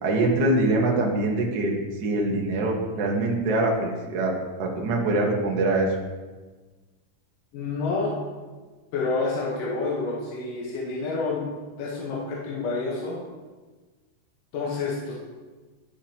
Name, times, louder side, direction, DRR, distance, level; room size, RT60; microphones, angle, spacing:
voice 1, 0.0-1.7 2.0-4.3 4.6-5.9, right 2 dB, 55° right, -1 dB, 1.2 m, -23 dB
voice 2, 7.5-8.2 8.9-11.5 11.8-13.2 14.5-15.1, left 3 dB, 75° left, -5 dB, 2.8 m, -28 dB
12.0 x 6.9 x 2.9 m, 1.3 s
omnidirectional pair, 3.8 m